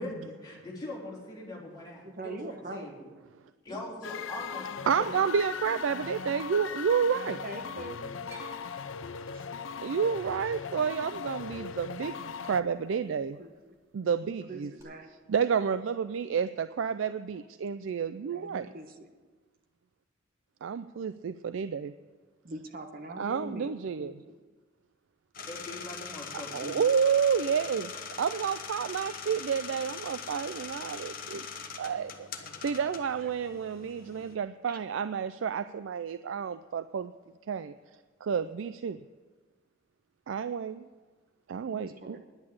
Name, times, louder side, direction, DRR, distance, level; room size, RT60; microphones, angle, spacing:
voice 1, 0.0-3.1 3.6-5.1 25.5-26.8 28.2-28.4, left 1 dB, 20° left, -4 dB, 3.5 m, -41 dB
voice 2, 2.0-3.1 7.4-8.1 9.3-9.5 13.1-13.5 14.2-15.1 18.3-18.9 22.4-24.2 33.2-33.3 34.7-34.8 41.7-42.2, right 1 dB, 50° right, 6 dB, 1.2 m, -43 dB
sound 1, 4.0-12.6, left 6 dB, 85° left, 0.5 m, -39 dB
voice 3, 4.9-7.4 9.8-13.4 13.9-14.7 15.3-18.7 20.6-21.9 23.2-24.1 25.4-25.5 26.5-27.9 28.2-31.4 31.8-37.1 37.5-37.7 38.2-39.0 40.3-40.9 41.5-42.2, right 7 dB, 80° right, 11 dB, 0.4 m, -30 dB
sound 2, 8.3-12.5 12.8-13.5 14.8-14.9, right 1 dB, 15° right, 2.6 m, -54 dB
sound 3, 25.3-34.3, left 6 dB, 50° left, 1.1 m, -42 dB
10.5 x 8.7 x 8.4 m, 1.4 s
head